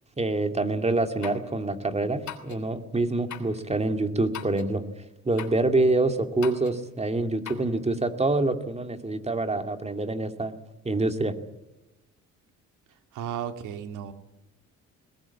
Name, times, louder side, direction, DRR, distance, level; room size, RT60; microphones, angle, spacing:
voice 1, 0.2-4.9 5.2-10.5 10.8-11.3, right 2 dB, 20° right, 7 dB, 2.5 m, -26 dB
sound 1, 1.2-1.5 2.3-2.6 3.3-3.6 4.3-4.7 5.4-5.6 6.4-6.8 7.4-7.7, left 10 dB, 70° left, 3.3 m, -40 dB
voice 2, 13.1-14.1, right 9 dB, 85° right, 8 dB, 2.3 m, -34 dB
21.0 x 19.0 x 8.5 m, 0.95 s
cardioid pair, 90°, 30 cm